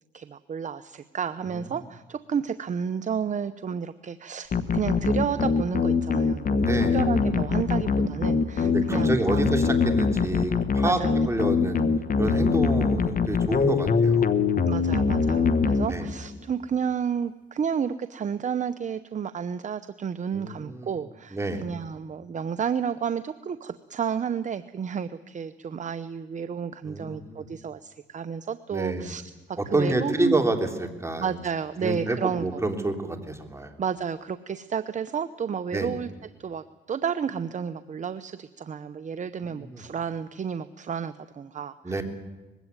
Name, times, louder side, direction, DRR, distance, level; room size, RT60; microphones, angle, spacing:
voice 1, 0.1-6.6 6.9-9.4 10.8-11.2 14.7-29.2 29.5-30.4 31.2-32.5 33.8-36.1 36.4-42.0, right 7 dB, 40° right, 12 dB, 0.8 m, -31 dB
sound 1, 4.5-16.4, left 5 dB, 45° left, 1.3 m, -23 dB
voice 2, 6.6-7.0 8.6-11.0 11.3-11.8 12.2-14.3 15.9-16.1 20.3-21.0 21.3-21.6 26.8-27.4 28.7-29.1 29.6-31.4 31.8-33.7 35.7-35.9 39.4-39.8 41.8-42.0, right 2 dB, 15° right, 4 dB, 3.3 m, -28 dB
21.0 x 16.5 x 9.5 m, 1.2 s
cardioid pair, 90°, 20 cm